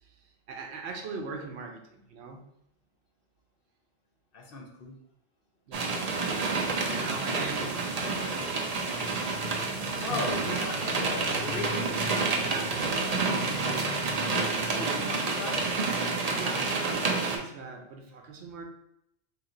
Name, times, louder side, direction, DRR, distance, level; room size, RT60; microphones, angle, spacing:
voice 1, 0.5-2.4 5.7-6.6 6.9-9.8 12.4-13.4 16.4-18.6, right 4 dB, 80° right, 4 dB, 0.9 m, -41 dB
voice 2, 4.3-5.0 10.0-11.9 14.8-15.6, left 4 dB, 60° left, 1 dB, 0.9 m, -37 dB
sound 1, 5.7-17.4, right 3 dB, 45° right, 0.5 m, -29 dB
3.2 x 2.8 x 3.7 m, 0.78 s
omnidirectional pair, 1.1 m